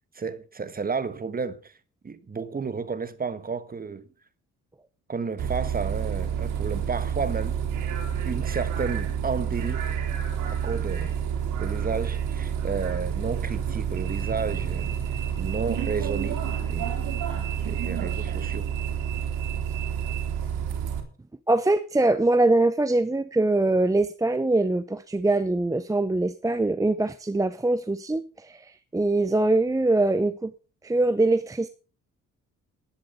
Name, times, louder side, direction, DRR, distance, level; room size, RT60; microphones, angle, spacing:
voice 1, 0.1-1.7 2.0-4.0 5.1-7.6 8.2-9.9 10.4-11.1 11.6-14.9 15.4-16.4 16.7-17.0 17.6-18.7, right 5 dB, 30° right, 1.5 m, -32 dB
Bus, 5.4-21.0, right 8 dB, 90° right, 3.2 m, -29 dB
voice 2, 21.5-30.5 30.8-31.7, right 2 dB, 10° right, 0.7 m, -23 dB
11.5 x 10.5 x 5.6 m
cardioid pair, 90°, 30 cm